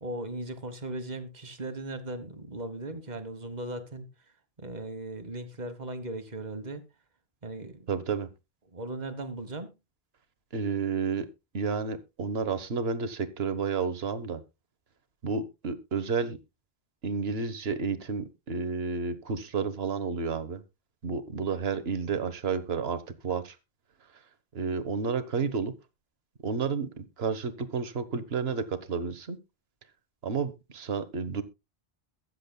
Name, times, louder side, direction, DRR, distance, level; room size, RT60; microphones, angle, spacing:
voice 1, 0.0-4.1 4.6-6.8 7.4-7.8 8.7-9.7, right 2 dB, 45° right, 1.5 m, -37 dB
voice 2, 7.9-8.3 10.5-11.3 11.5-14.4 15.2-16.4 17.0-20.6 21.0-23.5 24.5-25.7 26.4-29.4 30.2-31.4, right 5 dB, 75° right, 1.4 m, -31 dB
22.0 x 7.4 x 2.2 m
omnidirectional pair, 1.0 m